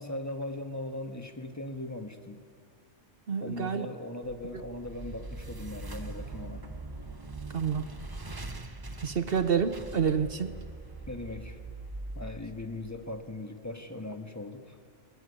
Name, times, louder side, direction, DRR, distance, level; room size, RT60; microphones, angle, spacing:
voice 1, 0.0-2.4 3.4-6.6 11.1-11.6 12.1-14.8, left 2 dB, 15° left, 6 dB, 1.4 m, -39 dB
voice 2, 3.3-3.9 7.5-7.9 9.0-10.5, right 7 dB, 55° right, 10 dB, 1.0 m, -28 dB
sound 1, 4.2-13.4, right 2 dB, 20° right, 0.9 m, -42 dB
20.0 x 20.0 x 9.6 m, 2.3 s
omnidirectional pair, 1.2 m